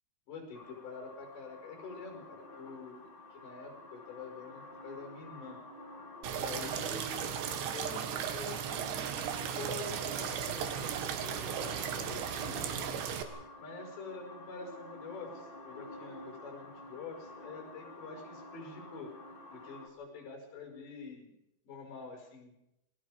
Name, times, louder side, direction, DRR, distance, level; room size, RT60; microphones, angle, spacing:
voice 1, 0.3-3.0 3.3-5.6 6.4-13.0 13.6-19.1 19.5-21.3 21.6-22.6, left 4 dB, 65° left, 2 dB, 7.7 m, -46 dB
sound 1, 0.5-19.9, left 2 dB, 20° left, 1.4 m, -50 dB
sound 2, 6.2-13.2, right 8 dB, 70° right, 3.7 m, -36 dB
28.5 x 21.0 x 5.1 m, 0.85 s
omnidirectional pair, 5.5 m